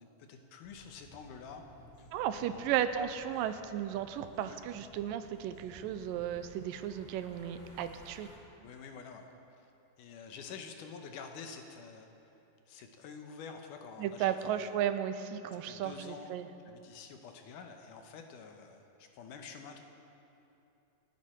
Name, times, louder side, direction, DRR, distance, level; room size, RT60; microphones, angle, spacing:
voice 1, 0.0-1.6 2.0-2.1 2.3-3.0 4.5-4.6 8.6-9.3 10.0-12.1 12.7-14.8 15.5-16.3 16.7-19.8, left 5 dB, 75° left, 5 dB, 2.4 m, -48 dB
sound 1, 0.6-8.4, left 1 dB, 15° left, 2.4 m, -57 dB
voice 2, 2.1-8.3 14.0-16.5, right 10 dB, 90° right, 10 dB, 2.3 m, -34 dB
28.5 x 9.7 x 4.4 m, 2.9 s
omnidirectional pair, 3.9 m